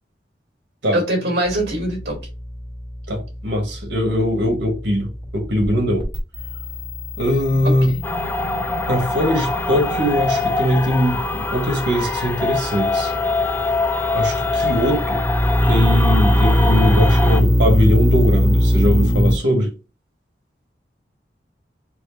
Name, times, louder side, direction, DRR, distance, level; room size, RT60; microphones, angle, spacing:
voice 1, 0.9-2.2 7.9-8.0, right 1 dB, 65° right, 2.6 m, -22 dB
sound 1, 1.5-19.3, equal, 25° right, 1.5 m, -22 dB
voice 2, 3.1-6.1 7.2-7.9 8.9-13.1 14.1-15.2 15.7-19.7, equal, 85° right, 1.3 m, -21 dB
sound 2, 8.0-17.4, left 2 dB, 10° left, 0.4 m, -24 dB
4.6 x 2.4 x 3.9 m
head